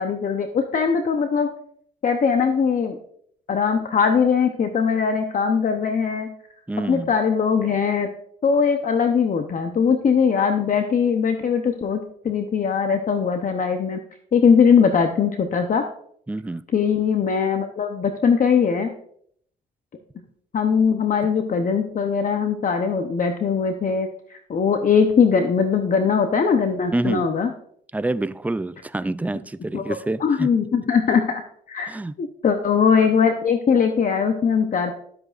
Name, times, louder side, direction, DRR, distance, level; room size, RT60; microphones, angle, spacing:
voice 1, 0.0-1.5 2.0-3.0 3.5-6.3 6.9-8.1 8.4-12.0 12.2-14.0 14.3-15.8 16.7-18.9 20.5-27.5 29.7-31.4 31.7-31.9 32.2-35.0, left 6 dB, 40° left, 0.8 m, -20 dB
voice 2, 6.7-7.1 16.3-16.6 26.9-27.3 27.9-30.5 31.9-32.1, right 2 dB, 10° right, 0.3 m, -27 dB
12.0 x 8.0 x 2.5 m
cardioid pair, 90°, 20 cm